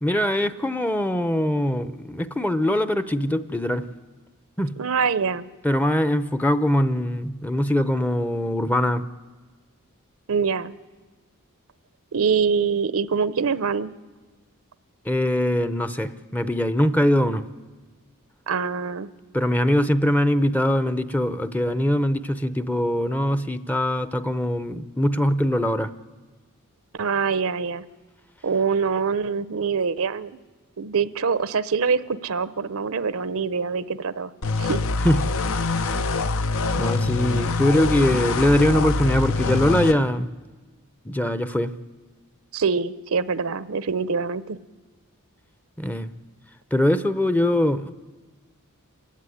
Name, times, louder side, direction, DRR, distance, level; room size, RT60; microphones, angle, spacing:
voice 1, 0.0-3.9 4.6-4.7 5.6-9.1 15.1-17.4 19.3-25.9 35.0-35.2 36.8-40.3 41.0-41.7 45.8-46.1 46.7-47.9, left 1 dB, 5° left, 12 dB, 0.7 m, -22 dB
voice 2, 4.8-5.5 10.3-10.7 12.1-13.9 18.5-19.1 26.9-27.8 28.4-30.4 30.8-34.3 34.6-34.8 42.5-44.6, right 5 dB, 65° right, 16 dB, 0.7 m, -24 dB
sound 1, 34.4-39.9, left 3 dB, 65° left, 0.8 m, -24 dB
27.0 x 16.0 x 9.9 m, 1.3 s
head